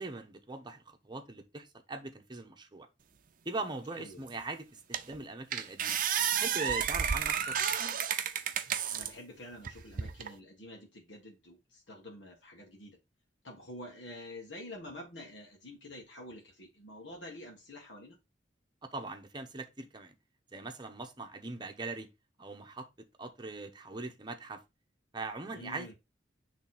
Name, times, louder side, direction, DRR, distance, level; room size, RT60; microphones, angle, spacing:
voice 1, 0.0-2.9 3.4-6.0 6.3-7.6 18.8-20.1 20.5-22.1 22.4-22.9 23.2-24.6 25.1-25.9, right 3 dB, 25° right, 1.0 m, -41 dB
sound 1, 4.3-4.4 4.9-5.2 5.5-9.1 9.6-10.3, right 8 dB, 50° right, 0.6 m, -31 dB
voice 2, 8.9-13.0 13.4-18.2 25.5-25.9, left 1 dB, 85° left, 1.6 m, -48 dB
6.6 x 3.4 x 4.2 m
head